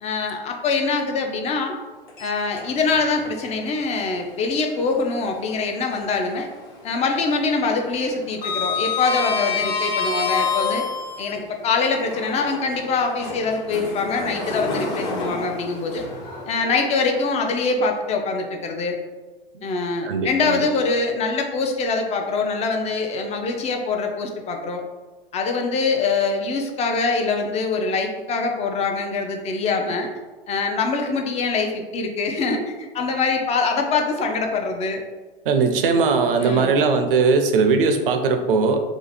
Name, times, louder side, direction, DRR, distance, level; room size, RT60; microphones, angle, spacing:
voice 1, 0.0-1.7 2.2-6.5 6.8-10.8 11.2-16.1 16.5-19.0 19.6-24.8 25.3-30.1 30.5-35.0 36.4-36.7, left 4 dB, 20° left, 3 dB, 0.5 m, -24 dB
Sliding door, 2.1-3.1 3.4-3.6 5.3-6.3 6.6-7.0 7.2-11.3 12.0-17.2, left 5 dB, 50° left, 1.2 m, -28 dB
voice 2, 20.0-20.7 35.5-38.8, right 4 dB, 65° right, 6 dB, 0.6 m, -19 dB
2.9 x 2.5 x 4.1 m, 1.3 s
hypercardioid pair, 100°, 29 cm